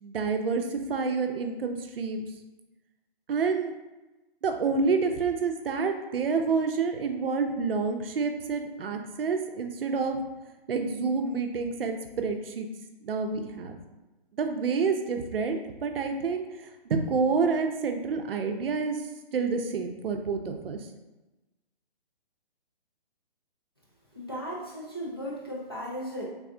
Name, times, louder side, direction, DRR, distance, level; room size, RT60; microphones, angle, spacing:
voice 1, 0.0-2.3 3.3-3.7 4.4-10.2 10.7-12.7 13.0-13.8 14.4-16.4 16.9-19.0 19.3-20.8, right 4 dB, 70° right, 5 dB, 0.5 m, -28 dB
voice 2, 24.1-26.3, equal, 25° left, -6 dB, 0.4 m, -36 dB
3.4 x 2.3 x 3.7 m, 1.1 s
hypercardioid pair, 175°, 29 cm